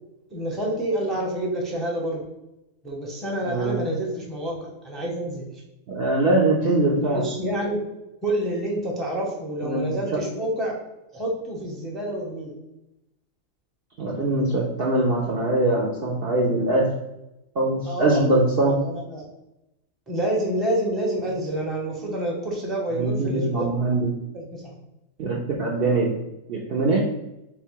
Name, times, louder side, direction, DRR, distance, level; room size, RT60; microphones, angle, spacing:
voice 1, 0.3-2.2 2.8-5.5 7.0-7.8 8.2-10.8 11.1-12.5 17.8-18.3 18.6-19.2 20.1-23.7 24.3-24.7, right 1 dB, ahead, -2 dB, 0.6 m, -28 dB
voice 2, 3.4-3.9 5.9-7.2 9.6-9.9 14.0-16.9 17.6-18.7 23.0-24.1 25.2-26.2 26.5-27.1, right 2 dB, 60° right, -2 dB, 0.7 m, -22 dB
4.0 x 2.2 x 4.5 m, 0.90 s
omnidirectional pair, 1.4 m